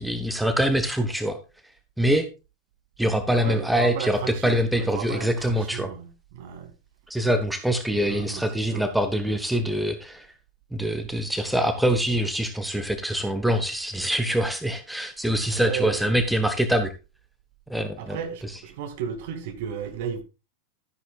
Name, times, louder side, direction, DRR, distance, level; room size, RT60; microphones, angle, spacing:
voice 1, 0.0-1.4 2.0-2.3 3.0-5.9 7.1-10.3 10.7-16.9 17.7-18.2 18.4-18.5, equal, ahead, 1.2 m, -24 dB
voice 2, 3.4-6.7 8.1-8.4 8.7-8.8 15.5-16.0 18.0-20.2, right 8 dB, 50° right, 2.4 m, -34 dB
13.0 x 10.5 x 2.4 m
figure-of-eight pair, 90°, 0 cm